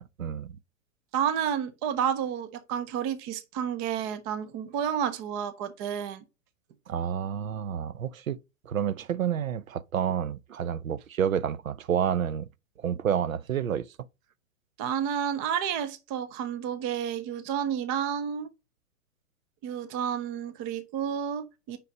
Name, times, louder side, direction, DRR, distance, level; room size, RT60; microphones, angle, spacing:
voice 1, 0.2-0.6 6.9-8.4 8.7-12.5 12.8-13.9, right 8 dB, 80° right, 0.6 m, -29 dB
voice 2, 1.1-6.2 14.8-18.5 19.6-21.8, right 8 dB, 15° right, 0.3 m, -30 dB
5.7 x 4.8 x 5.0 m
figure-of-eight pair, 110°, 40 cm